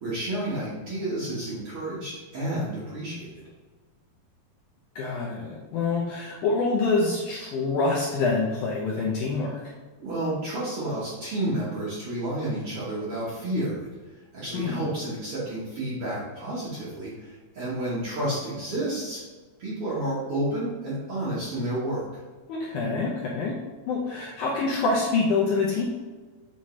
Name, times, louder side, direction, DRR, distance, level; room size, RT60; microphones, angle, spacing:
voice 1, 0.0-3.4 10.0-14.0 14.3-19.2 19.6-22.0, right 1 dB, 50° right, -9 dB, 1.8 m, -30 dB
voice 2, 5.0-9.6 14.5-14.8 22.5-23.6 23.9-25.8, left 3 dB, 75° left, -3 dB, 1.9 m, -26 dB
7.2 x 4.4 x 3.2 m, 1.4 s
omnidirectional pair, 4.3 m